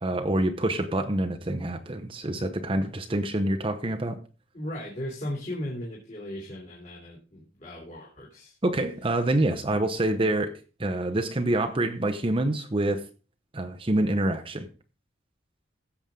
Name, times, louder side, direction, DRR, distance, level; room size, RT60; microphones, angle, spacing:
voice 1, 0.0-4.2 8.6-10.5 10.8-13.0 13.5-14.7, right 1 dB, 25° right, 0.8 m, -26 dB
voice 2, 4.5-8.6, left 1 dB, 40° left, 3.2 m, -37 dB
16.0 x 7.1 x 3.7 m
head